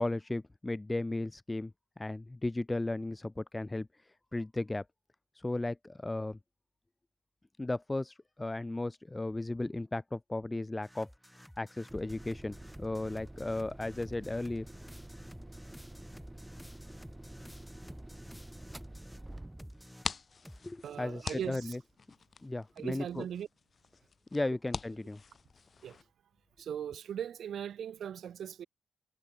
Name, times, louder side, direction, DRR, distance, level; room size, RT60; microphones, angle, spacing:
voice 1, 0.0-1.7 2.0-4.8 5.3-6.4 7.6-11.1 11.6-14.7 20.6-21.8 22.4-23.2 24.3-25.2, left 2 dB, 20° left, 1.2 m, -35 dB
sound 1, 10.8-19.3 19.6-20.7, equal, 5° left, 3.3 m, -53 dB
sound 2, 11.9-19.9, right 1 dB, 15° right, 2.1 m, -48 dB
sound 3, 19.7-26.0, left 5 dB, 45° left, 1.0 m, -45 dB
voice 2, 20.8-21.8 22.8-23.5 25.8-26.0 26.6-28.7, right 9 dB, 70° right, 1.9 m, -39 dB
supercardioid pair, 55°, 0 cm